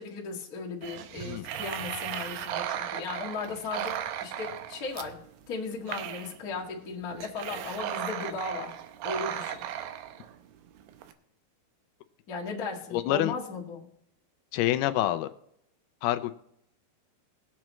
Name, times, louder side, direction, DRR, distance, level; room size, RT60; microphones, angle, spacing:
voice 1, 0.0-5.2 5.5-8.7 9.0-9.6 12.3-13.9, left 4 dB, 35° left, -3 dB, 1.4 m, -36 dB
sound 1, 0.8-11.1, right 10 dB, 85° right, 2.7 m, -36 dB
voice 2, 12.9-13.3 14.5-15.3 16.0-16.3, left 14 dB, 85° left, 10 dB, 2.5 m, -26 dB
21.0 x 7.5 x 3.1 m, 0.72 s
omnidirectional pair, 4.5 m